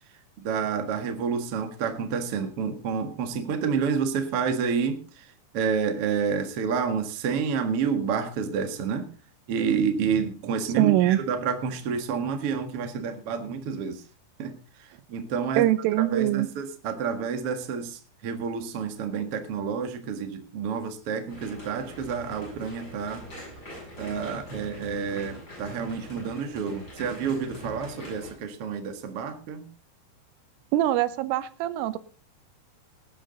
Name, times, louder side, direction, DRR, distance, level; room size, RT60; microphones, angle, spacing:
voice 1, 0.4-5.2 5.5-9.1 9.5-14.0 14.4-14.6 15.1-15.6 16.1-23.3 24.0-29.7, right 6 dB, 65° right, 7 dB, 1.4 m, -29 dB
voice 2, 10.7-11.2 15.6-16.5 30.7-32.0, right 14 dB, 85° right, 15 dB, 3.4 m, -23 dB
sound 1, 21.3-28.3, equal, 20° left, 8.2 m, -44 dB
18.5 x 10.0 x 4.0 m, 0.35 s
omnidirectional pair, 5.6 m